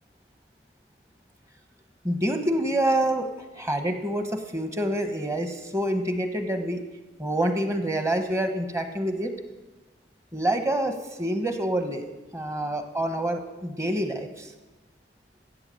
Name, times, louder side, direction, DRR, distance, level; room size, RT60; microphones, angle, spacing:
voice 1, 2.0-3.3 3.6-6.8 7.2-9.3 10.3-12.0 12.3-14.5, right 1 dB, 15° right, 6 dB, 1.1 m, -27 dB
13.5 x 8.2 x 7.7 m, 1.2 s
head